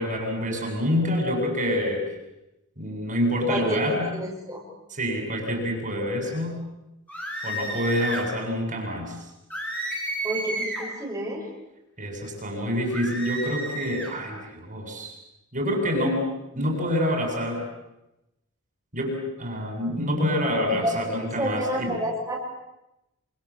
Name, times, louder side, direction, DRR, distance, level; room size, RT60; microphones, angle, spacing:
voice 1, 0.0-2.0 2.8-4.1 5.0-6.6 7.4-9.2 12.0-15.2 15.5-16.3 16.5-17.6 18.9-21.9, equal, 35° right, 2 dB, 7.7 m, -27 dB
voice 2, 3.5-4.6 10.2-11.5 20.6-22.4, equal, 15° right, -5 dB, 6.6 m, -30 dB
sound 1, 7.1-8.3 9.5-10.9 12.9-14.1, right 1 dB, 10° left, 7.2 m, -31 dB
28.0 x 27.5 x 7.6 m, 0.92 s
head